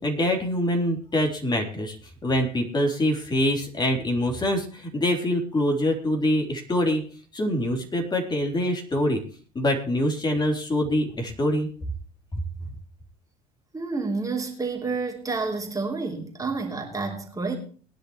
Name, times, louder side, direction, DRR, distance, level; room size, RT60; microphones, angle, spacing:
voice 1, 0.0-2.0 2.2-7.0 7.3-9.2 9.5-11.7 12.3-12.4, left 1 dB, 20° left, 3.8 m, -24 dB
voice 2, 13.7-17.6, right 4 dB, 15° right, 3.4 m, -29 dB
21.0 x 10.5 x 3.2 m
figure-of-eight pair, 70°, 20 cm